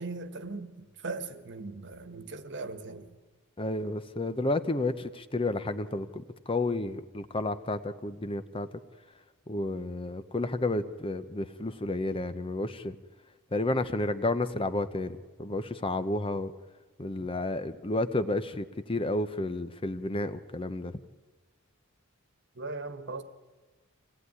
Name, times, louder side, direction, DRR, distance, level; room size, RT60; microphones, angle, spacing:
voice 1, 0.0-3.1 22.5-23.2, right 3 dB, 55° right, 1.5 m, -39 dB
voice 2, 3.6-8.7 9.5-13.0 13.5-16.5 17.0-20.9, left 2 dB, 25° left, 0.8 m, -31 dB
25.5 x 17.5 x 9.8 m
head